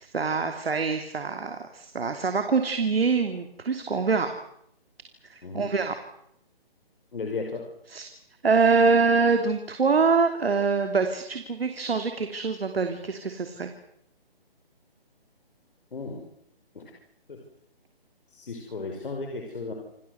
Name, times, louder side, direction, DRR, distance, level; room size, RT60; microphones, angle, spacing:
voice 1, 0.0-4.3 5.3-5.9 7.9-8.1 8.4-13.7, right 4 dB, 70° right, 6 dB, 3.0 m, -24 dB
voice 2, 7.1-7.7 15.9-16.2 16.7-16.8 17.3-17.4 18.3-19.7, left 4 dB, 60° left, 2 dB, 5.5 m, -34 dB
28.0 x 18.5 x 8.1 m, 0.75 s
hypercardioid pair, 175°, 30 cm